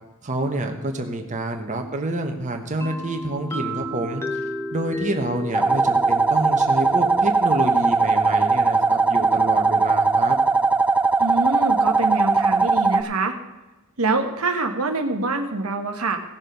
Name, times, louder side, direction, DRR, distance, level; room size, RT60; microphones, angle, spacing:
voice 1, 0.2-4.2 4.7-10.4, right 1 dB, 35° right, 3 dB, 1.2 m, -27 dB
sound 1, 2.8-10.5, left 1 dB, 10° left, 1.0 m, -35 dB
sound 2, 5.5-13.0, right 3 dB, 5° right, 0.4 m, -19 dB
voice 2, 11.2-13.3 14.0-16.2, right 3 dB, 75° right, 5 dB, 1.2 m, -25 dB
16.5 x 6.6 x 5.2 m, 1.1 s
head